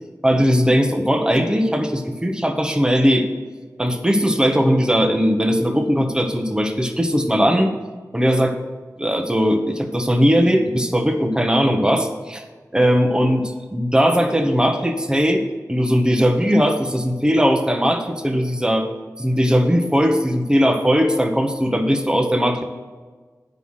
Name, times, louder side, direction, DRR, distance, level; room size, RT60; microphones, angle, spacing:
voice 1, 0.2-3.3 3.8-7.7 8.1-8.6 9.0-12.4 12.7-15.4 15.7-18.9 19.2-22.6, equal, 10° right, 5 dB, 1.0 m, -19 dB
9.1 x 5.6 x 6.4 m, 1.4 s
wide cardioid pair, 70°, 6 cm